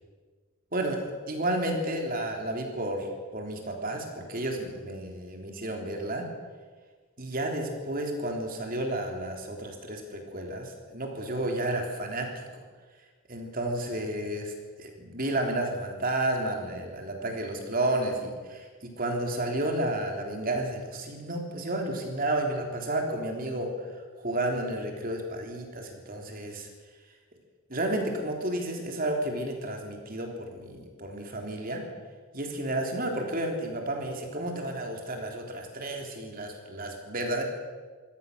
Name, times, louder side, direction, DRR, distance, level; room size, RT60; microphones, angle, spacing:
voice 1, 0.7-6.3 7.2-12.6 13.3-23.7 24.2-26.7 27.7-31.9 32.3-37.4, right 1 dB, 40° right, 3 dB, 3.5 m, -32 dB
24.0 x 17.0 x 6.8 m, 1.5 s
head